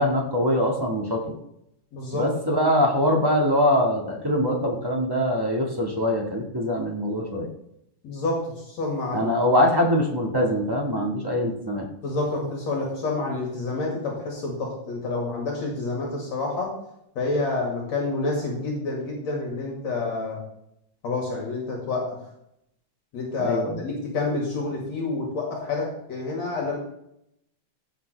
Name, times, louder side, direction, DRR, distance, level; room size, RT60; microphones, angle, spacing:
voice 1, 0.0-1.4 2.1-7.5 9.1-11.9 23.4-23.8, left 1 dB, 20° right, -1 dB, 0.7 m, -23 dB
voice 2, 1.9-2.3 8.0-9.3 12.0-16.7 17.2-20.4 21.0-22.2 23.1-26.8, left 3 dB, 60° left, -2 dB, 3.3 m, -28 dB
15.5 x 7.2 x 3.4 m, 0.78 s
omnidirectional pair, 3.6 m